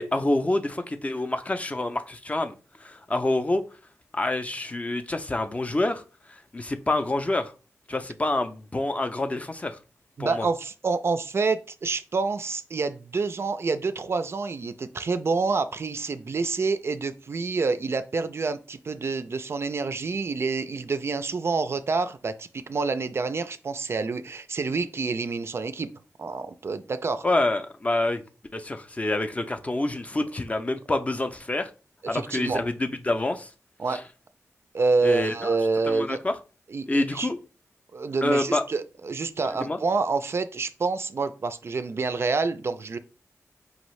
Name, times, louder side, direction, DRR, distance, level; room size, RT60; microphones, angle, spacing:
voice 1, 0.0-2.5 2.8-3.6 4.1-6.0 6.3-7.5 7.9-9.8 10.2-10.5 27.2-28.2 28.5-31.7 32.1-33.5 33.9-34.0 35.0-35.6 35.9-36.4 36.9-37.4 38.2-38.6 39.6-39.8, left 2 dB, 25° left, 0.4 m, -27 dB
voice 2, 10.2-25.9 26.2-27.3 32.1-32.6 33.8-34.0 34.7-36.2 36.7-37.3 37.9-43.0, right 4 dB, 50° right, 0.3 m, -27 dB
4.9 x 2.6 x 3.1 m
wide cardioid pair, 90°, 6 cm